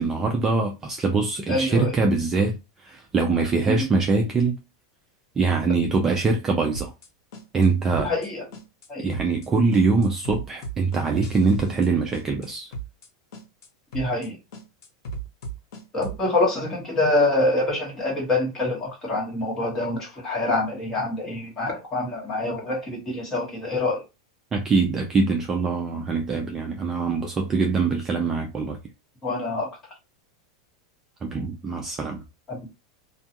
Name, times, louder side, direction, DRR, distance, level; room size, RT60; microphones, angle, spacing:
voice 1, 0.0-2.6 2.8-4.6 5.4-6.9 7.5-8.1 9.0-12.7 24.5-28.8 31.2-32.2, right 4 dB, 15° right, 0.3 m, -23 dB
voice 2, 1.5-2.0 3.6-3.9 8.0-8.5 8.9-9.1 13.9-14.4 15.9-24.0 29.2-29.8 32.5-32.6, left 2 dB, 15° left, 1.2 m, -25 dB
sound 1, 6.7-7.1 7.3-7.7 7.9-8.3 8.5-8.9 9.1-9.5 9.7-11.9 12.1-12.5 12.7-13.1 13.3-13.7 13.9-14.3 14.5-16.2, right 3 dB, 75° left, 0.9 m, -36 dB
2.3 x 2.2 x 2.7 m
supercardioid pair, 160°, 3 cm